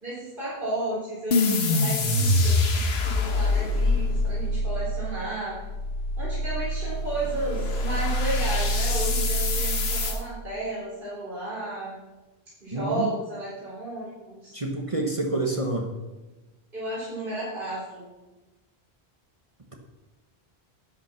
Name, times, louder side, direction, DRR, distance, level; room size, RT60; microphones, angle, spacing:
voice 1, 0.0-5.6 6.2-12.0 12.6-14.6 16.7-18.0, right 1 dB, 55° right, -8 dB, 4.1 m, -33 dB
sound 1, 1.3-10.2, left 1 dB, 90° left, 1.4 m, -25 dB
voice 2, 12.7-13.1 14.5-16.0, right 2 dB, 35° right, 1 dB, 1.3 m, -28 dB
11.5 x 9.4 x 5.9 m, 1.1 s
omnidirectional pair, 1.0 m